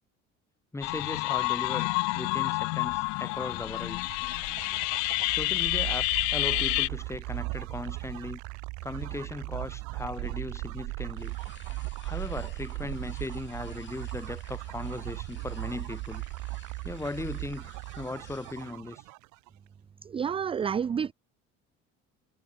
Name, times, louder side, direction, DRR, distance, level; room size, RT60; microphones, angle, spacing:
voice 1, 0.7-1.9 2.1-4.0 5.3-8.4 8.8-11.4 12.0-16.2 16.8-19.0, left 2 dB, 10° left, 1.9 m, -38 dB
sound 1, 0.8-6.9, left 31 dB, 85° left, 0.5 m, -29 dB
sound 2, 3.8-19.5, right 24 dB, 80° right, 1.0 m, -38 dB
sound 3, 11.1-18.8, left 8 dB, 40° left, 4.2 m, -55 dB
voice 2, 20.0-21.1, right 7 dB, 20° right, 0.4 m, -29 dB
cardioid pair, 115°, 29 cm